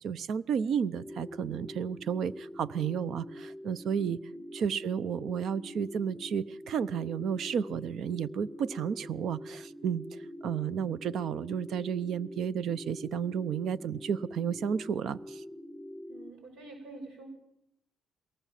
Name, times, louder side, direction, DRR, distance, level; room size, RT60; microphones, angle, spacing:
voice 1, 0.0-4.2 4.5-10.1 10.4-15.4, right 7 dB, 70° right, 17 dB, 0.8 m, -32 dB
sound 1, 0.8-16.3, left 1 dB, 10° left, 0.8 m, -45 dB
voice 2, 16.1-17.3, right 2 dB, 90° right, 4 dB, 6.5 m, -48 dB
22.5 x 18.5 x 7.5 m, 0.85 s
cardioid pair, 90°, 0 cm